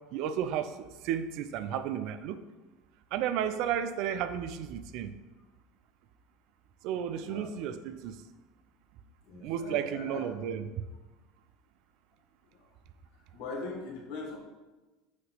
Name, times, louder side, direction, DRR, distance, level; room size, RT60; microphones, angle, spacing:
voice 1, 0.1-2.4 3.1-5.2 6.8-8.2 9.3-10.7, right 9 dB, 65° right, 11 dB, 0.4 m, -33 dB
voice 2, 9.2-10.2 12.5-12.6 13.3-14.4, left 3 dB, 65° left, -1 dB, 1.7 m, -41 dB
6.3 x 2.9 x 5.6 m, 1.1 s
hypercardioid pair, 90°, 0 cm